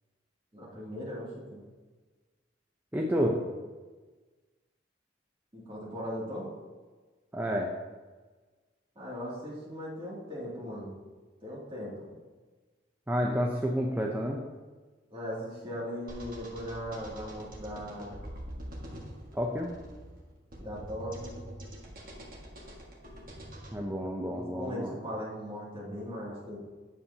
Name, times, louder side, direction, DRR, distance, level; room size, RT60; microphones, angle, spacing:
voice 1, 0.5-1.6 5.5-6.5 9.0-10.9 11.4-12.1 15.1-18.2 20.6-21.4 24.3-26.6, equal, 30° right, -6 dB, 2.5 m, -38 dB
voice 2, 2.9-3.4 7.3-7.7 13.1-14.4 19.3-19.7 23.7-25.0, equal, 10° right, 0 dB, 0.6 m, -30 dB
sound 1, 16.1-23.8, equal, 50° right, 1.6 m, -45 dB
9.5 x 7.0 x 2.8 m, 1.3 s
head